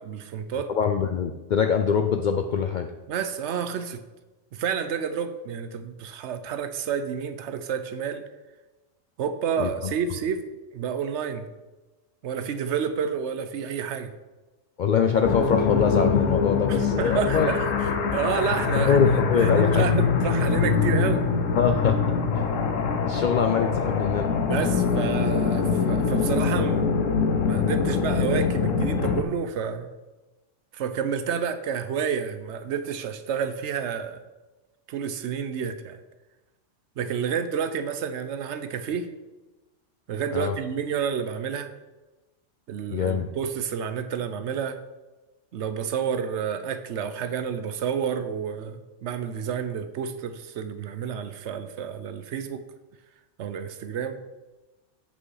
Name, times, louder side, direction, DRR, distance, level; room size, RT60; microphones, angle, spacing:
voice 1, 0.0-0.7 3.1-4.0 4.5-8.2 9.2-10.4 10.7-11.5 12.2-14.1 16.7-21.2 24.5-27.0 27.4-29.9 30.7-34.2 34.9-36.0 37.0-39.1 40.1-41.7 42.7-44.8 45.5-52.6 53.4-54.2, right 7 dB, 70° right, 10 dB, 0.9 m, -30 dB
voice 2, 0.7-2.9 9.6-9.9 14.8-17.5 18.8-19.8 21.5-22.0 22.4-22.5 23.0-24.3 40.3-40.6 42.9-43.3, left 6 dB, 65° left, 6 dB, 0.4 m, -24 dB
sound 1, 15.2-29.2, left 5 dB, 90° left, 1.1 m, -23 dB
8.5 x 5.6 x 4.8 m, 1.1 s
omnidirectional pair, 1.3 m